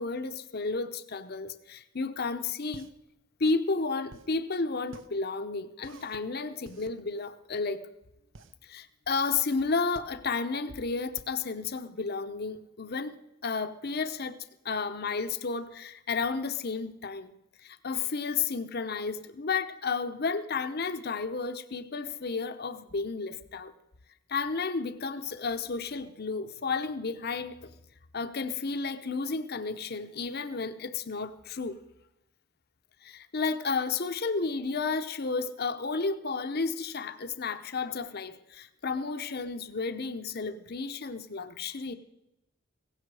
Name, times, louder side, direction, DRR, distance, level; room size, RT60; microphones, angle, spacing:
voice 1, 0.0-2.9 3.4-7.8 8.6-13.1 13.4-14.4 14.6-17.3 17.6-23.7 24.3-27.7 28.1-31.8 33.0-41.9, left 4 dB, 50° left, 0.8 m, -32 dB
sound 1, 2.5-12.6, right 3 dB, 65° right, 0.8 m, -53 dB
16.5 x 15.5 x 4.8 m
head